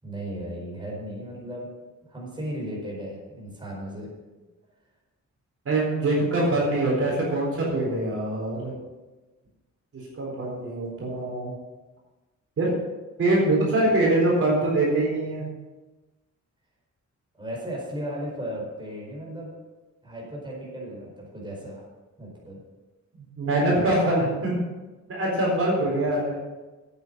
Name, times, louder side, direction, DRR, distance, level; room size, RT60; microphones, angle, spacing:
voice 1, 0.0-1.7 2.1-4.1 17.4-19.5 20.0-21.9 22.2-22.6 26.1-26.2, equal, 15° right, -3 dB, 4.8 m, -35 dB
voice 2, 5.7-8.7 9.9-11.5 12.6-12.7 13.2-15.4 23.2-24.6 25.1-26.4, right 2 dB, 50° right, -3 dB, 4.1 m, -24 dB
9.3 x 9.2 x 6.9 m, 1.2 s
wide cardioid pair, 140°, 29 cm